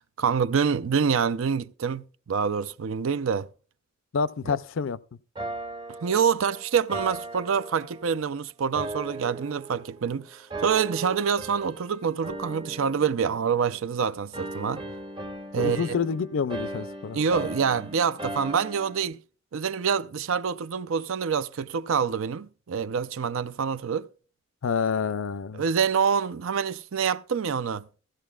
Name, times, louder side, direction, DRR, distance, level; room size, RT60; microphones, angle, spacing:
voice 1, 0.0-3.5 4.5-4.6 6.0-14.8 15.5-15.9 17.1-19.2 19.5-24.1 25.5-27.9, right 6 dB, 75° right, 0.5 m, -26 dB
voice 2, 4.1-5.0 15.6-17.2 24.6-25.6, left 5 dB, 65° left, 0.4 m, -28 dB
sound 1, 5.4-8.3 8.7-10.1 10.5-11.9 12.2-14.0 14.3-19.0, right 2 dB, 25° right, 0.8 m, -38 dB
15.5 x 15.0 x 2.3 m
head